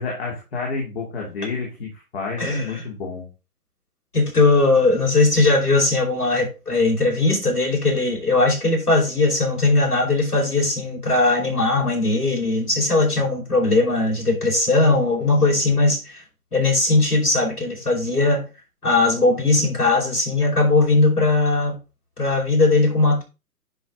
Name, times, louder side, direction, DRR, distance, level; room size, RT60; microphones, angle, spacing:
voice 1, 0.0-3.3, left 4 dB, 40° left, 3.0 m, -29 dB
voice 2, 2.4-2.8 4.1-16.2 16.5-18.4 18.8-21.8 22.2-23.2, left 2 dB, 80° left, 5.4 m, -19 dB
10.0 x 5.4 x 3.9 m
figure-of-eight pair, 125°, 45 cm